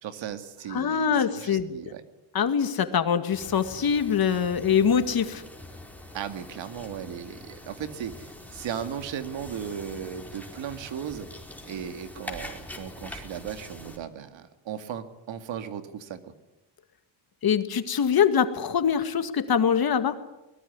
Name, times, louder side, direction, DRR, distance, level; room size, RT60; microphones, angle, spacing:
voice 1, 0.0-2.0 6.1-11.3 11.7-16.2, right 8 dB, 75° right, 9 dB, 2.3 m, -36 dB
voice 2, 0.7-1.7 2.3-5.4 17.4-20.2, left 7 dB, 50° left, 9 dB, 2.1 m, -24 dB
sound 1, 3.3-14.0, left 1 dB, 5° left, 4.6 m, -44 dB
22.0 x 20.0 x 9.6 m, 0.99 s
cardioid pair, 110°, 46 cm